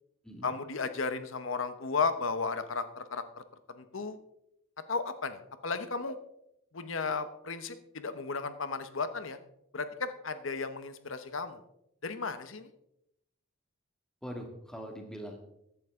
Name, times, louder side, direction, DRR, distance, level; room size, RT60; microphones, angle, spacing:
voice 1, 0.4-3.4 3.8-4.2 4.9-6.2 6.7-9.4 9.7-11.6 12.0-12.7, left 4 dB, 80° left, 11 dB, 1.0 m, -34 dB
voice 2, 14.2-15.4, equal, 5° left, 2 dB, 2.1 m, -42 dB
15.0 x 11.5 x 3.7 m, 0.78 s
head